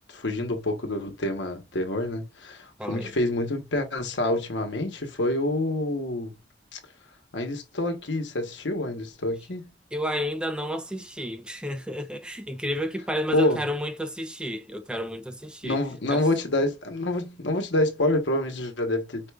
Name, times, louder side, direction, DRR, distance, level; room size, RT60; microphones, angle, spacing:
voice 1, 0.1-6.3 6.7-6.8 7.3-9.7 13.3-13.6 15.6-19.3, left 1 dB, 85° left, 1.1 m, -27 dB
voice 2, 2.8-3.1 9.9-15.8 16.1-16.3, equal, 5° right, 0.4 m, -31 dB
5.0 x 2.3 x 3.3 m
head